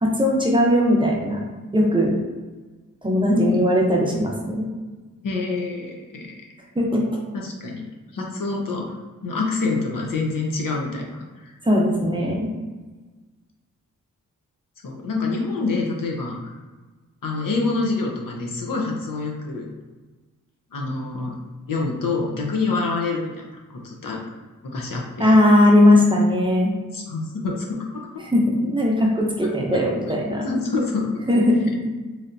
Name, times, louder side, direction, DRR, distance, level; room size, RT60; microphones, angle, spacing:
voice 1, 0.0-1.4 1.7-2.1 3.0-4.7 6.8-7.0 11.6-12.5 25.2-26.7 28.2-30.5 31.3-31.6, left 1 dB, 15° right, -2 dB, 0.6 m, -18 dB
voice 2, 3.3-3.6 5.2-6.4 7.3-7.8 8.1-9.0 9.2-11.5 14.8-16.5 17.2-19.7 20.7-21.4 21.7-23.4 23.7-24.2 24.6-25.4 26.9-28.2 29.7-29.8 30.4-31.5, left 3 dB, 80° left, -1 dB, 0.7 m, -26 dB
3.2 x 2.7 x 2.5 m, 1.3 s
wide cardioid pair, 90°, 32 cm